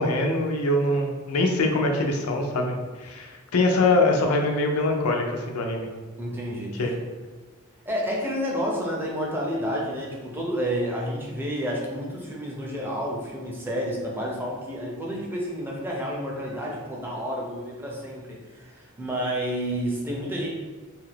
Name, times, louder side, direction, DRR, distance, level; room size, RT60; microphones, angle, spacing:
voice 1, 0.0-5.9 6.8-6.9, left 2 dB, 80° left, 2 dB, 0.5 m, -23 dB
voice 2, 6.2-7.0 7.9-20.5, equal, 10° right, -3 dB, 0.4 m, -30 dB
2.7 x 2.4 x 3.2 m, 1.4 s
head